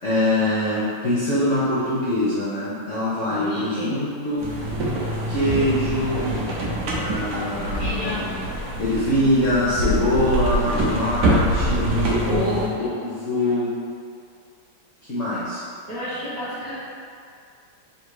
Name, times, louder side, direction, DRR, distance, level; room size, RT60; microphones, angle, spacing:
voice 1, 0.0-4.5 5.3-6.3 7.0-8.4 8.8-12.2 12.8-13.8 15.0-15.6, left 1 dB, 60° left, -10 dB, 0.8 m, -23 dB
voice 2, 3.3-4.1 7.5-8.2 12.3-13.0 15.9-16.8, equal, 40° right, -11 dB, 0.7 m, -30 dB
sound 1, 4.4-12.7, right 1 dB, 60° right, 1.2 m, -25 dB
3.7 x 2.9 x 4.7 m, 2.4 s
omnidirectional pair, 2.4 m